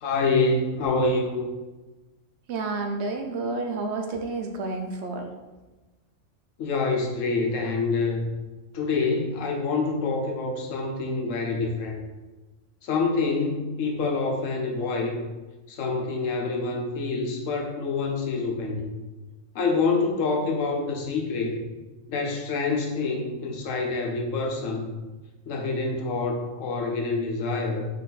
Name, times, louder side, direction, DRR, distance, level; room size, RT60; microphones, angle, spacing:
voice 1, 0.0-1.5 6.6-8.3 8.7-12.0 12.8-15.2 15.7-18.9 19.5-21.6 22.1-24.9 25.5-27.9, left 3 dB, 80° left, 1 dB, 1.1 m, -26 dB
voice 2, 2.5-5.3, right 3 dB, 70° right, 4 dB, 0.8 m, -30 dB
4.1 x 3.1 x 4.0 m, 1.2 s
omnidirectional pair, 1.3 m